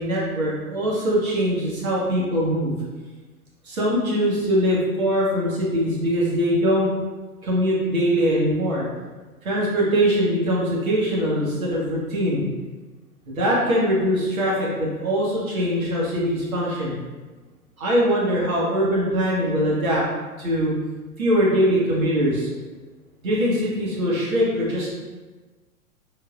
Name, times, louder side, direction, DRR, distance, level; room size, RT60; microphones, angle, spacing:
voice 1, 0.0-2.7 3.6-6.9 7.4-8.9 9.4-12.4 13.3-16.9 17.8-20.0 20.4-20.8 21.2-22.5 23.2-24.9, equal, 65° right, -5 dB, 1.3 m, -22 dB
3.8 x 2.6 x 2.4 m, 1.3 s
figure-of-eight pair, 110°, 45 cm